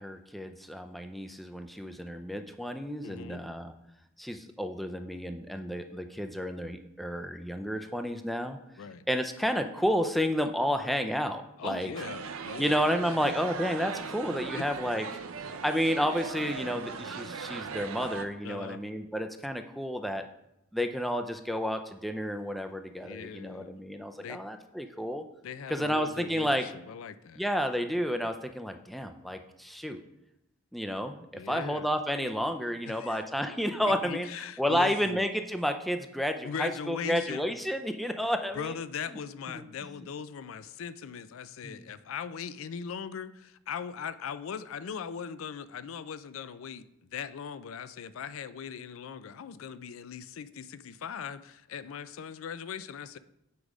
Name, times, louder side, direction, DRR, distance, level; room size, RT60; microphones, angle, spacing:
voice 1, 0.0-3.7 4.2-8.6 9.1-11.9 12.6-15.0 15.6-20.2 20.7-25.2 25.7-26.7 27.4-30.0 30.7-31.2 31.5-34.3 34.6-38.7 39.6-39.7 41.6-41.8, equal, ahead, 0.4 m, -31 dB
voice 2, 3.0-3.4 8.8-9.0 11.6-12.8 13.1-13.2 14.5-14.6 18.4-18.8 23.0-23.7 24.2-24.4 25.4-27.4 31.3-31.9 32.9-33.2 33.8-35.2 36.4-37.6 38.5-53.2, left 7 dB, 75° left, 0.4 m, -40 dB
sound 1, 11.9-18.3, right 5 dB, 85° right, 0.6 m, -39 dB
8.3 x 4.8 x 5.0 m
head